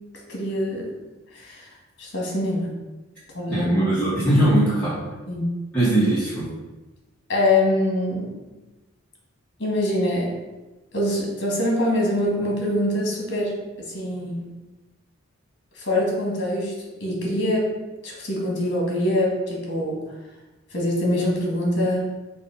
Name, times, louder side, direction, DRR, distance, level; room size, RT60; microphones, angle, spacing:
voice 1, 0.3-0.9 1.3-1.7 2.0-2.8 3.3-3.7 5.3-5.4 7.3-8.3 9.6-10.3 10.9-14.5 15.8-16.7 17.0-17.7 18.0-20.0 20.7-22.1, left 1 dB, 55° left, -2 dB, 1.9 m, -24 dB
voice 2, 3.5-5.0 5.7-6.5, right 1 dB, 5° left, -12 dB, 1.4 m, -20 dB
6.3 x 2.8 x 5.4 m, 1.1 s
head